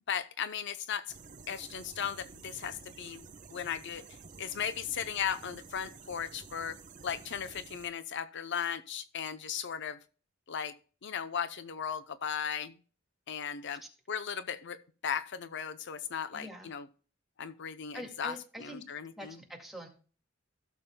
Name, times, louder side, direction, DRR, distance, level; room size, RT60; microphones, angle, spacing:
voice 1, 0.1-1.1 1.5-3.2 3.5-4.0 4.4-6.8 7.0-10.0 10.5-10.7 11.0-12.7 13.3-13.8 14.1-14.8 15.0-16.9 17.4-18.3 18.6-19.4, left 8 dB, 60° left, 12 dB, 0.6 m, -36 dB
sound 1, 1.1-7.9, right 4 dB, 40° right, 0.9 m, -51 dB
voice 2, 16.3-16.7 17.9-18.8 19.2-19.9, equal, ahead, 0 dB, 2.1 m, -45 dB
16.0 x 7.2 x 2.2 m, 0.39 s
head